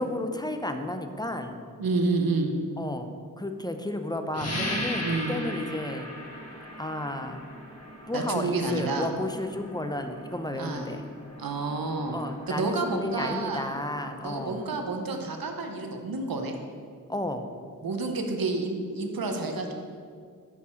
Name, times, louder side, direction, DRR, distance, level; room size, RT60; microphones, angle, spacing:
voice 1, 0.0-1.6 2.8-6.1 6.8-7.4 8.1-11.0 12.1-14.6 17.1-17.5, left 1 dB, 10° left, 6 dB, 0.6 m, -32 dB
voice 2, 1.8-2.5 5.0-5.3 8.1-9.1 10.6-10.9 11.4-12.2 12.5-13.6 14.2-16.5 17.8-19.7, right 3 dB, 90° right, 4 dB, 0.8 m, -29 dB
sound 1, 4.3-14.6, left 1 dB, 45° left, 1.5 m, -39 dB
5.4 x 4.9 x 6.3 m, 2.1 s
cardioid pair, 50°, 34 cm